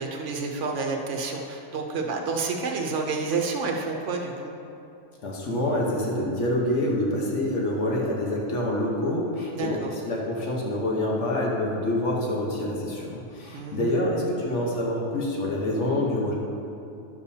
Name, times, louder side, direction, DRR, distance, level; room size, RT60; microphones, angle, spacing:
voice 1, 0.0-4.5 9.5-9.9 13.5-13.9, right 4 dB, 85° right, 1 dB, 1.0 m, -29 dB
voice 2, 5.2-16.3, left 1 dB, 90° left, -3 dB, 1.4 m, -26 dB
10.5 x 7.1 x 2.7 m, 2.7 s
omnidirectional pair, 1.2 m